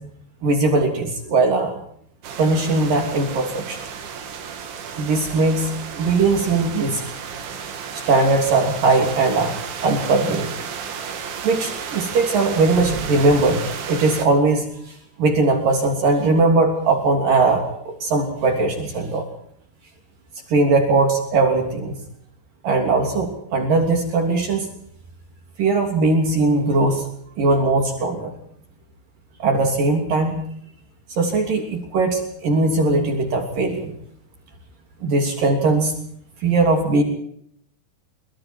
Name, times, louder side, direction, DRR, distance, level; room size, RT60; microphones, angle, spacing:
voice 1, 0.4-1.7 2.4-3.8 5.0-7.0 8.1-10.5 11.4-14.7 15.2-19.2 20.5-22.0 22.6-24.7 25.6-27.0 27.4-28.3 29.4-30.4 31.2-33.9 35.0-35.9 36.4-37.0, right 3 dB, 50° right, 3 dB, 4.5 m, -19 dB
sound 1, 2.2-14.3, right 6 dB, 90° right, 5.1 m, -33 dB
26.5 x 24.5 x 4.6 m, 0.67 s
omnidirectional pair, 5.1 m